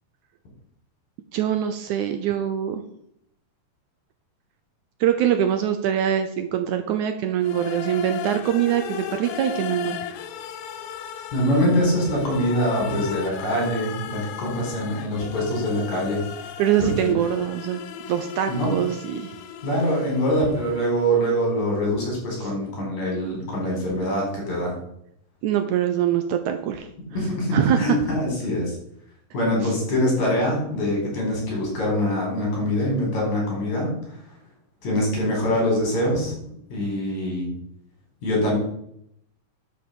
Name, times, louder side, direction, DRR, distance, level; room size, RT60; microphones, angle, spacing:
voice 1, 1.3-2.8 5.0-10.1 16.6-17.8 18.1-19.3 22.4-22.5 25.4-26.9 27.5-28.0, right 10 dB, 75° right, 7 dB, 2.0 m, -23 dB
sound 1, 7.4-21.3, left 9 dB, 85° left, 2.5 m, -36 dB
voice 2, 11.3-16.5 16.8-17.1 18.5-18.7 19.6-24.7 27.1-28.8 29.3-33.9 34.8-36.3 36.7-37.5 38.2-38.6, equal, 55° left, -2 dB, 5.8 m, -24 dB
11.0 x 5.5 x 6.9 m, 0.73 s
omnidirectional pair, 3.9 m